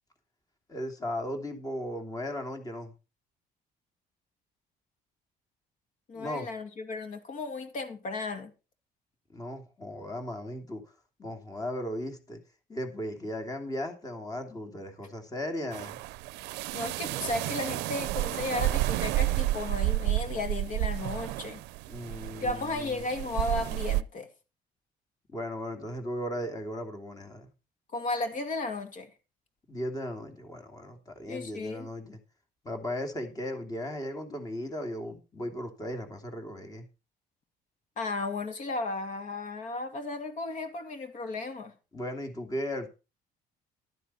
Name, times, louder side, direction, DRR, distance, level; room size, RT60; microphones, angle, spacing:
voice 1, 0.7-2.9 6.1-6.5 9.3-10.8 11.2-12.4 12.7-16.0 21.9-23.0 25.3-27.5 29.7-32.2 32.6-36.8 41.9-42.9, left 1 dB, 20° left, 2.7 m, -36 dB
voice 2, 6.1-8.5 16.7-21.6 22.4-24.3 27.9-29.1 31.3-31.9 38.0-41.7, left 3 dB, 50° left, 2.3 m, -34 dB
sound 1, 15.7-24.0, right 17 dB, 90° right, 0.6 m, -31 dB
12.0 x 9.9 x 4.3 m
cardioid pair, 110°, 17 cm